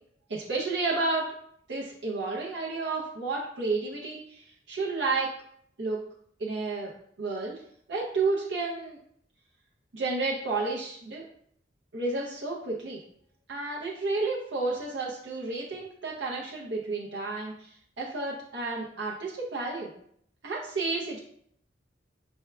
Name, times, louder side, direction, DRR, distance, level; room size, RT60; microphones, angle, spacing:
voice 1, 0.3-1.3 1.7-5.3 5.8-6.0 6.4-6.9 7.2-7.6 7.9-9.0 9.9-11.2 11.9-13.0 13.5-19.9 20.4-21.2, right 3 dB, 80° right, -4 dB, 0.7 m, -31 dB
4.5 x 3.5 x 2.2 m, 0.68 s
head